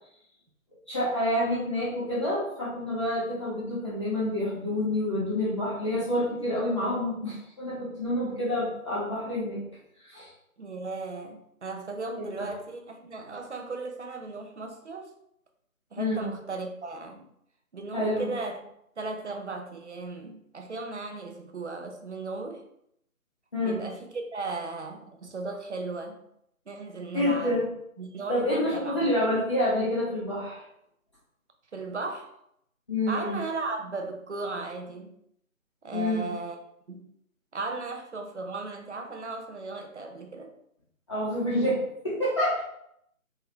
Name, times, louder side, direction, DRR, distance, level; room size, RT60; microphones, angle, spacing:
voice 1, 0.9-9.6 10.1-10.3 12.2-12.5 16.0-16.2 17.9-18.3 23.5-23.8 27.1-27.6 28.3-30.6 32.9-33.3 35.9-36.3 41.1-42.6, left 1 dB, 20° left, -10 dB, 1.1 m, -28 dB
voice 2, 10.6-15.1 15.9-17.3 17.7-18.6 19.0-22.6 23.6-26.2 26.7-27.6 28.0-29.1 31.7-32.4 33.1-35.1 35.8-36.6 36.9-37.1 37.5-40.5, right 3 dB, 55° right, 4 dB, 0.6 m, -36 dB
3.9 x 2.8 x 2.8 m, 0.74 s
figure-of-eight pair, 155°, 43 cm